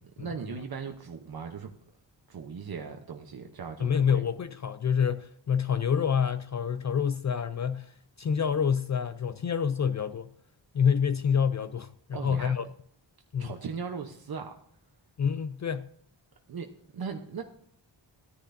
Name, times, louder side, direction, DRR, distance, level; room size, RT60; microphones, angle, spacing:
voice 1, 0.2-1.7 2.3-4.2 12.1-12.5 13.4-14.5 16.5-16.7 16.9-17.4, right 6 dB, 55° right, 0.9 m, -38 dB
voice 2, 3.8-10.3 10.7-12.6 13.3-13.5 15.2-15.9, left 7 dB, 40° left, 0.4 m, -27 dB
15.0 x 10.0 x 2.6 m
wide cardioid pair, 175°, 44 cm